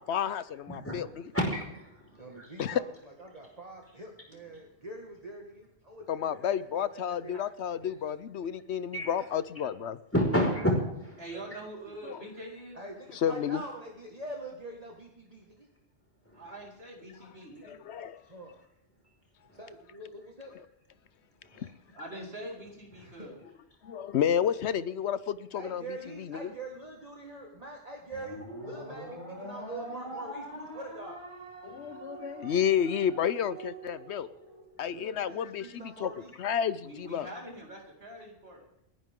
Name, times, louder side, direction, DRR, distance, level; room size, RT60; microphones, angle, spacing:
voice 1, 0.0-1.3 2.6-2.8 6.1-10.0 12.0-12.3 13.1-13.6 17.6-18.2 21.6-21.7 23.8-25.8 26.2-26.5 31.6-34.3 34.8-36.1 36.4-37.3, left 8 dB, 75° left, 16 dB, 1.0 m, -31 dB
voice 2, 1.3-2.5 8.9-9.1 10.1-11.2 21.5-21.6, equal, 10° left, -1 dB, 5.0 m, -29 dB
voice 3, 2.2-6.5 6.9-7.4 11.5-12.0 12.7-15.7 18.3-18.5 19.6-20.5 23.0-23.3 25.6-31.2 34.9-36.3, right 2 dB, 35° right, 0 dB, 2.0 m, -44 dB
voice 4, 11.2-12.8 16.3-17.7 21.9-23.4 36.8-38.6, right 1 dB, 65° right, -2 dB, 4.7 m, -44 dB
sound 1, 28.1-34.6, right 1 dB, 25° left, 5.5 m, -44 dB
29.5 x 10.5 x 3.7 m, 0.87 s
omnidirectional pair, 1.1 m